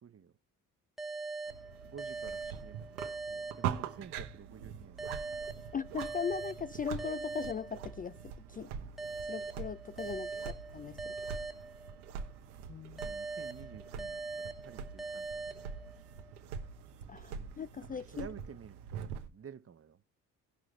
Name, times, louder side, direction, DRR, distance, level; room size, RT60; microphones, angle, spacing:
voice 1, 0.0-0.3 1.8-5.3 8.7-8.9 10.3-10.6 13.0-15.3 15.5-15.9 17.3-17.6 17.9-20.0, right 7 dB, 30° right, 1.1 m, -52 dB
sound 1, 1.0-4.3 5.0-8.3 9.0-12.3 13.0-16.3, right 3 dB, ahead, 1.2 m, -42 dB
sound 2, 1.5-19.3, right 8 dB, 85° right, 1.1 m, -44 dB
voice 2, 5.7-8.7 9.3-11.1 12.7-13.0 17.1-18.3, left 6 dB, 20° left, 0.4 m, -39 dB
17.5 x 6.1 x 3.2 m
hypercardioid pair, 50°, 44 cm